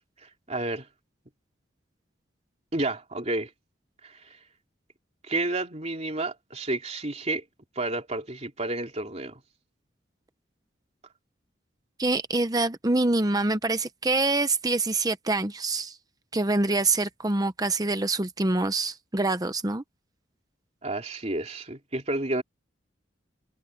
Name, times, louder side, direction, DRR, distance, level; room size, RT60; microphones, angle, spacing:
voice 1, 0.2-0.9 2.7-3.5 4.0-4.4 5.2-7.4 7.7-9.4 20.8-22.4, right 2 dB, 35° right, 3.1 m, -30 dB
voice 2, 12.0-16.0 16.3-19.8, right 2 dB, 20° right, 0.9 m, -25 dB
head